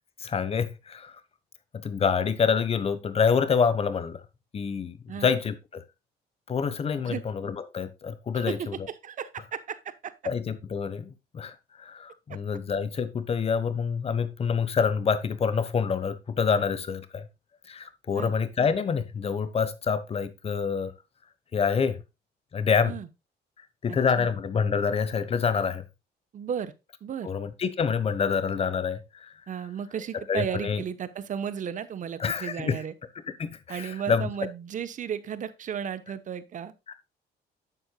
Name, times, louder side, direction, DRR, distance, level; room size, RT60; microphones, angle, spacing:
voice 1, 0.2-1.2 1.7-4.2 4.5-5.8 6.5-8.9 10.2-17.3 17.7-20.9 21.5-22.0 22.5-22.9 23.8-25.8 27.2-29.3 30.3-30.8 32.2-32.8 33.4-34.3 36.9-37.0, left 6 dB, 35° left, 1.1 m, -27 dB
voice 2, 8.3-10.1 18.1-18.3 22.8-23.1 23.9-24.3 26.3-26.7 27.0-27.3 29.5-32.9 33.7-36.7, right 8 dB, 50° right, 1.0 m, -34 dB
11.0 x 7.8 x 2.3 m
cardioid pair, 130°, 17 cm